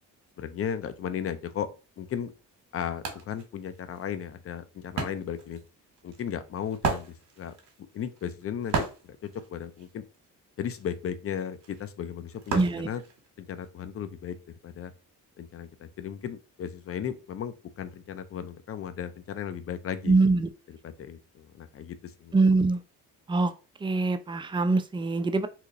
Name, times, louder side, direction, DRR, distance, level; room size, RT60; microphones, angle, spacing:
voice 1, 0.4-1.7 2.0-2.3 2.7-5.6 6.0-7.5 7.9-10.0 10.6-13.0 13.4-14.4 14.6-14.9 15.4-20.2 20.7-22.3, left 8 dB, 45° left, 12 dB, 0.5 m, -35 dB
Wood, 2.0-2.1 2.4-13.7, right 5 dB, 65° right, 1.2 m, -36 dB
voice 2, 12.5-12.9 20.1-20.5 22.3-22.8 23.3-23.5 23.8-25.5, right 3 dB, 15° right, 10 dB, 0.3 m, -23 dB
2.8 x 2.5 x 3.8 m, 0.33 s
cardioid pair, 100°, 32 cm